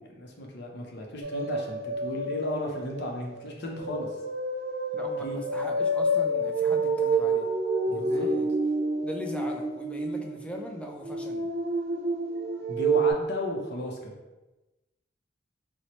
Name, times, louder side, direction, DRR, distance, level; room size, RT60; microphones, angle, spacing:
voice 1, 0.1-4.1 5.2-5.7 6.6-6.8 7.9-8.3 12.7-14.2, left 1 dB, 65° left, 0 dB, 0.6 m, -35 dB
sound 1, 1.2-13.1, right 2 dB, 60° right, 0.5 m, -28 dB
voice 2, 4.9-7.5 7.9-8.6 9.0-11.5, equal, 5° left, 1 dB, 0.3 m, -40 dB
4.3 x 2.1 x 2.9 m, 1.1 s
head